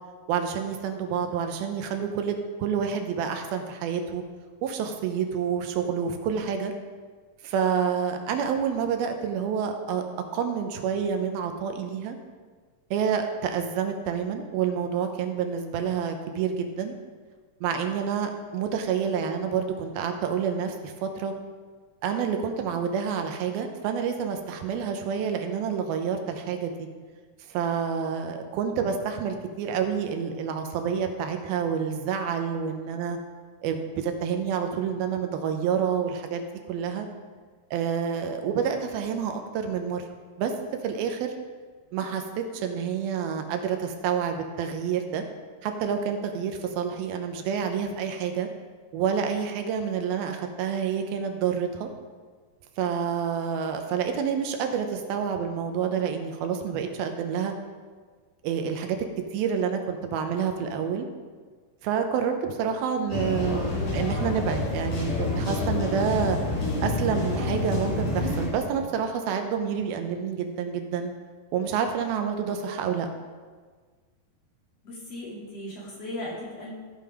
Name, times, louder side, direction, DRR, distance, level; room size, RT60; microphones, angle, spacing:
voice 1, 0.3-4.2 4.6-6.7 7.4-10.0 10.3-12.2 12.9-17.0 17.6-21.3 22.0-26.7 27.5-33.2 33.6-37.1 37.7-40.0 40.4-40.5 40.8-41.3 41.9-45.2 45.6-48.5 48.9-51.9 52.8-57.5 58.4-59.0 59.3-61.1 61.8-66.4 66.8-71.1 71.5-73.1, right 7 dB, 90° right, 5 dB, 2.7 m, -28 dB
sound 1, 63.1-68.5, left 2 dB, 60° left, 4.9 m, -28 dB
voice 2, 74.8-76.7, left 1 dB, 45° left, -6 dB, 3.3 m, -37 dB
15.5 x 5.7 x 4.9 m, 1.5 s
omnidirectional pair, 4.3 m